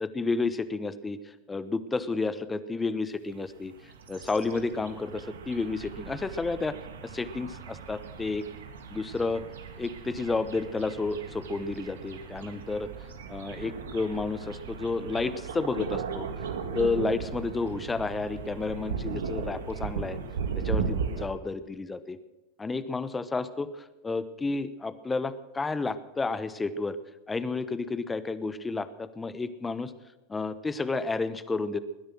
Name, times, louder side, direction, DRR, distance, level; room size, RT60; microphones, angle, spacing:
voice 1, 0.0-3.7 4.1-8.4 8.9-9.4 9.8-12.9 13.3-16.3 16.7-20.2 20.6-22.2 22.6-27.0 27.3-29.9 30.3-31.8, left 3 dB, 15° left, 14 dB, 1.0 m, -31 dB
sound 1, 3.5-21.3, right 6 dB, 85° right, 1.7 m, -37 dB
20.0 x 10.0 x 6.2 m, 1.1 s
hypercardioid pair, 100°, 0 cm